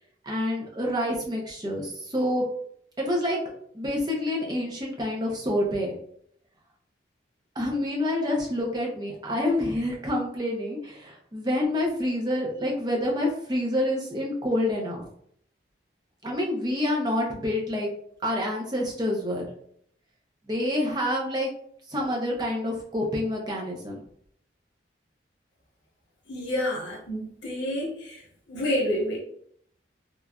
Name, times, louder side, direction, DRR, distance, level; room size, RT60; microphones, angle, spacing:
voice 1, 0.2-2.4 3.0-3.4 3.7-6.0 7.6-15.0 16.2-17.9 18.2-19.4 20.5-21.5 21.9-24.0, left 1 dB, 20° right, -1 dB, 0.5 m, -27 dB
voice 2, 26.3-28.2 28.5-29.2, left 1 dB, 90° left, -4 dB, 0.9 m, -29 dB
3.0 x 2.4 x 2.2 m, 0.67 s
head